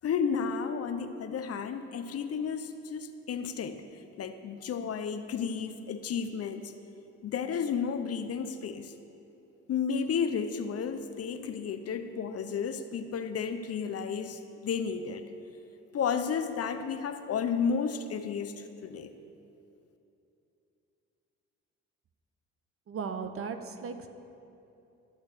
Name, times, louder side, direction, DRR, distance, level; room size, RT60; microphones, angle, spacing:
voice 1, 0.0-3.8 4.2-6.7 7.2-8.9 9.7-15.2 15.9-19.1, left 6 dB, 55° left, 9 dB, 0.8 m, -32 dB
voice 2, 22.9-24.1, right 5 dB, 45° right, 8 dB, 1.0 m, -36 dB
14.0 x 6.5 x 6.7 m, 2.8 s
supercardioid pair, 70°, 30 cm